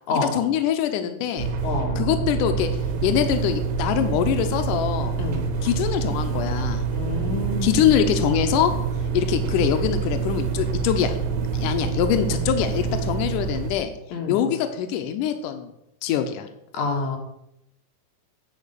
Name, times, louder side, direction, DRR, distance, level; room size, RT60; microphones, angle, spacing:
voice 1, 0.1-1.5 2.0-2.7 3.0-5.2 5.6-6.8 7.6-8.7 9.1-11.2 11.5-13.9 14.3-15.7 16.0-16.5, left 10 dB, 85° left, 7 dB, 1.8 m, -23 dB
sound 1, 1.4-13.8, right 5 dB, 70° right, 2.8 m, -26 dB
voice 2, 1.6-2.0 5.2-5.5 7.0-7.8 14.1-14.4 16.7-17.2, left 3 dB, 60° left, 2 dB, 2.5 m, -27 dB
9.8 x 4.8 x 6.6 m, 0.81 s
omnidirectional pair, 4.6 m